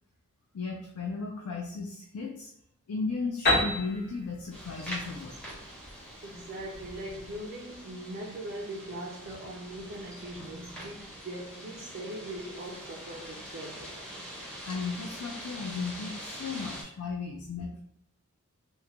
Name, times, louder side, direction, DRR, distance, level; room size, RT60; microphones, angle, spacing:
voice 1, 0.5-2.5 2.9-5.4 14.7-17.8, left 4 dB, 80° left, 0.4 m, -35 dB
Piano, 3.5-7.1, left 1 dB, 45° left, 1.1 m, -31 dB
sound 1, 4.5-16.8, equal, 5° left, 0.5 m, -44 dB
voice 2, 6.2-14.3, right 1 dB, 45° right, 0.3 m, -41 dB
3.0 x 2.1 x 2.5 m
head